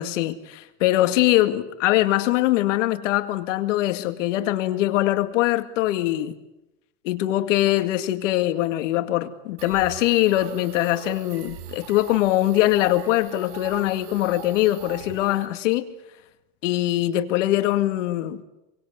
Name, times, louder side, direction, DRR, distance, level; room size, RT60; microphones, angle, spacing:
voice 1, 0.0-6.3 7.0-15.9 16.6-18.4, left 15 dB, 80° left, 2.3 m, -22 dB
sound 1, 9.6-15.5, right 8 dB, 55° right, 3.5 m, -40 dB
26.0 x 24.0 x 8.2 m
supercardioid pair, 175°, 37 cm